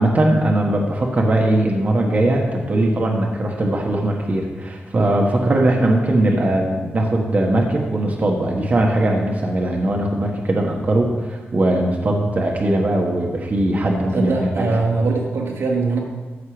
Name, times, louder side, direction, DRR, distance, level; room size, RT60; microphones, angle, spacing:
voice 1, 0.0-14.7, right 1 dB, 40° right, 0 dB, 1.4 m, -20 dB
voice 2, 14.1-16.0, right 3 dB, 90° right, -1 dB, 2.1 m, -22 dB
14.5 x 6.6 x 4.9 m, 1.3 s
wide cardioid pair, 145°, 4 cm